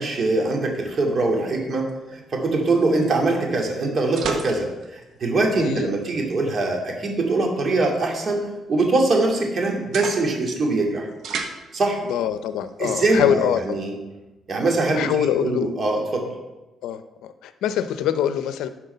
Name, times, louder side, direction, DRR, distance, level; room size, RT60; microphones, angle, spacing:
voice 1, 0.0-11.1 11.7-12.0 12.8-13.9 14.5-16.3, right 2 dB, 50° right, 0 dB, 2.3 m, -23 dB
sound 1, 0.7-13.2, right 5 dB, 70° right, 1.2 m, -39 dB
voice 2, 5.6-5.9 12.1-13.8 14.9-15.7 16.8-18.7, left 10 dB, 85° left, 11 dB, 0.6 m, -24 dB
11.0 x 4.6 x 6.6 m, 1.1 s
cardioid pair, 90°, 0 cm